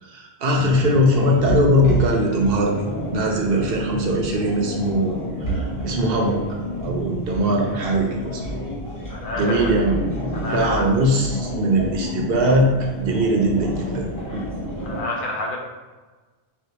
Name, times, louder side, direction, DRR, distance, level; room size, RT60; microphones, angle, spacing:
voice 1, 0.0-2.7 3.1-6.4 6.8-8.4 9.4-10.0 10.5-12.7 13.0-14.1 14.3-14.4, equal, 65° right, 0 dB, 0.8 m, -20 dB
sound 1, 0.5-15.0, equal, 20° left, 0.7 m, -29 dB
voice 2, 9.1-9.7 10.3-10.8 14.8-15.6, left 2 dB, 60° left, -1 dB, 0.7 m, -29 dB
4.4 x 2.1 x 2.8 m, 1.3 s
omnidirectional pair, 1.1 m